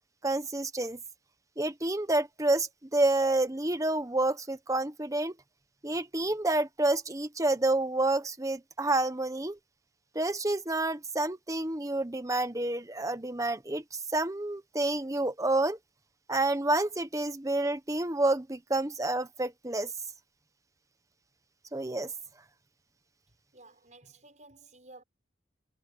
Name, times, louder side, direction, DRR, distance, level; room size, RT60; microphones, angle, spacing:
voice 1, 0.2-1.0 1.6-5.4 5.8-9.6 10.1-15.8 16.3-19.9 21.7-22.1, right 2 dB, 20° right, 1.2 m, -29 dB
voice 2, 23.5-25.0, right 2 dB, 40° right, 6.8 m, -54 dB
head